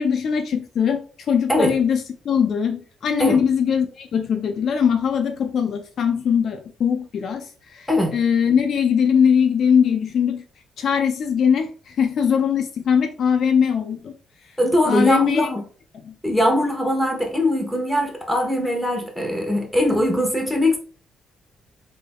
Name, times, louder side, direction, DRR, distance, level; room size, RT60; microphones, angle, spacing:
voice 1, 0.0-10.4 10.8-14.1 14.8-15.5 16.0-16.2, left 7 dB, 65° left, 7 dB, 0.4 m, -21 dB
voice 2, 14.6-15.6 16.2-20.8, left 1 dB, 5° left, 1 dB, 1.3 m, -21 dB
3.8 x 3.4 x 2.3 m, 0.40 s
cardioid pair, 90°, 0 cm